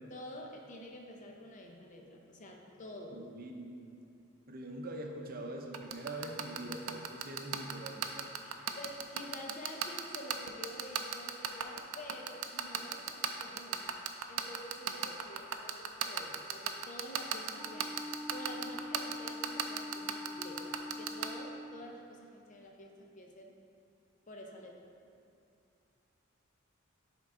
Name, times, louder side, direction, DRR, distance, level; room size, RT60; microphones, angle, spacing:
voice 1, 0.1-3.2 8.2-13.9 14.3-17.9 18.3-23.5 24.3-24.9, left 1 dB, 35° left, 1 dB, 0.7 m, -48 dB
voice 2, 3.1-3.8 4.5-8.3, right 1 dB, 45° right, 2 dB, 0.6 m, -43 dB
sound 1, 5.7-21.3, right 10 dB, 85° right, 0.5 m, -33 dB
Wind instrument woodwind instrument, 17.5-21.8, left 1 dB, 5° right, 0.5 m, -44 dB
10.0 x 3.8 x 3.7 m, 2.5 s
head